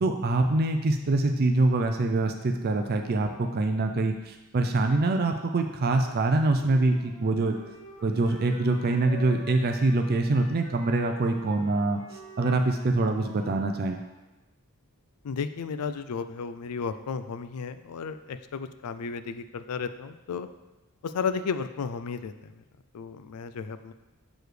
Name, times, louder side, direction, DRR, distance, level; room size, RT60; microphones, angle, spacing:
voice 1, 0.0-7.5 8.0-12.0 12.4-14.0, right 2 dB, 45° right, 5 dB, 0.4 m, -25 dB
Wind instrument woodwind instrument, 5.9-14.1, left 2 dB, 60° left, 1.7 m, -47 dB
voice 2, 15.2-20.5 21.0-22.5 22.9-23.9, left 5 dB, 85° left, 11 dB, 0.4 m, -33 dB
6.8 x 6.2 x 3.3 m, 1.1 s
head